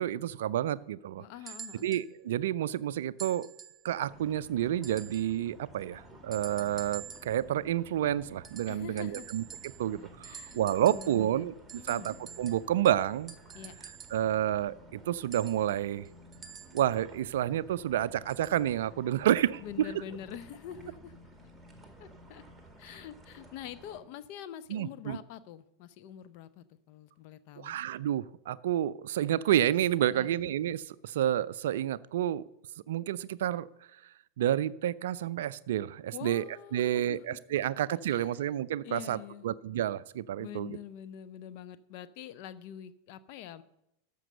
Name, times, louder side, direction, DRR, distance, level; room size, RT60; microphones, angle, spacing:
voice 1, 0.0-1.2 1.8-3.5 3.8-9.4 9.8-11.5 11.9-13.3 14.1-16.0 16.7-19.6 24.7-25.2 27.6-32.4 32.9-33.7 34.4-36.4 36.7-40.8, right 11 dB, 55° right, 17 dB, 0.3 m, -29 dB
voice 2, 1.2-1.9 8.7-9.3 10.0-11.5 11.8-12.1 13.5-13.7 19.6-21.1 22.0-22.4 22.8-27.8 30.0-30.5 36.1-37.4 37.9-38.5 38.8-39.5 40.4-43.6, left 10 dB, 45° left, 14 dB, 0.6 m, -45 dB
sound 1, 1.5-2.1 3.2-3.9 4.8-5.4 6.3-7.4 8.4-10.0 10.2-11.3 11.7-14.3 15.3-17.0 18.3-18.6 19.5-19.6, right 7 dB, 20° right, 0.7 m, -48 dB
sound 2, 4.0-24.0, equal, ahead, 2.1 m, -54 dB
13.5 x 5.3 x 6.6 m, 0.85 s
figure-of-eight pair, 90°, 0 cm